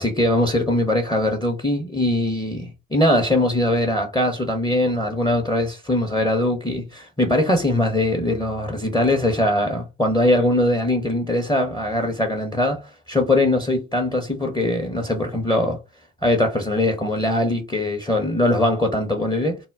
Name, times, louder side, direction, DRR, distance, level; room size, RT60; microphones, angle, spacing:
voice 1, 0.0-15.8 16.2-19.6, left 1 dB, 10° left, 0.6 m, -21 dB
2.1 x 2.0 x 3.3 m
hypercardioid pair, 45°, 35 cm